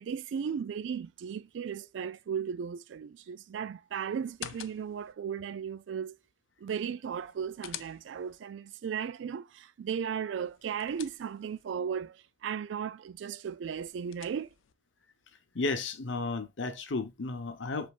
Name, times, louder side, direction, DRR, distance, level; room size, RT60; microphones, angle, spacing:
voice 1, 0.0-6.2 6.6-14.5, right 7 dB, 65° right, 0.3 m, -36 dB
sound 1, 4.2-5.1 7.1-8.4 10.4-11.6 13.6-14.7, left 11 dB, 85° left, 0.4 m, -47 dB
voice 2, 15.5-17.9, left 3 dB, 70° left, 0.8 m, -33 dB
5.1 x 3.4 x 2.4 m
head